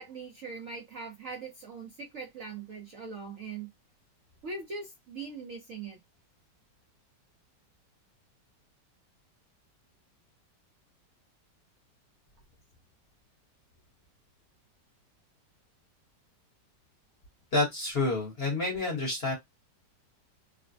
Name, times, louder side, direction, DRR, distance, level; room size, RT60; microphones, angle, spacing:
voice 1, 0.0-3.7 4.4-6.0, right 4 dB, 60° right, 0.9 m, -41 dB
voice 2, 17.5-19.3, left 2 dB, 40° left, 1.1 m, -28 dB
3.2 x 2.1 x 2.5 m
omnidirectional pair, 1.9 m